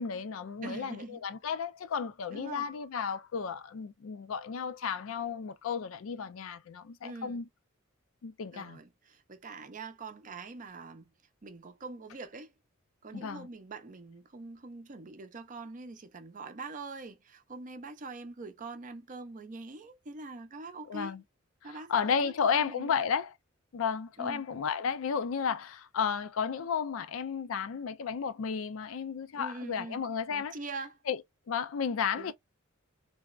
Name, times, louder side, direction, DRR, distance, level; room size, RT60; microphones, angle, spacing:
voice 1, 0.0-7.4 8.2-8.8 13.1-13.5 20.9-21.2 21.6-23.3 23.7-30.6 31.1-31.2 31.5-32.3, left 6 dB, 70° left, 0.4 m, -33 dB
voice 2, 0.6-1.2 2.3-2.7 7.0-7.4 8.5-11.1 11.4-12.5 13.0-21.2 21.6-23.0 24.2-24.4 29.4-30.0 30.3-31.0 32.1-32.3, right 3 dB, 40° right, 0.5 m, -44 dB
3.3 x 2.0 x 2.3 m
head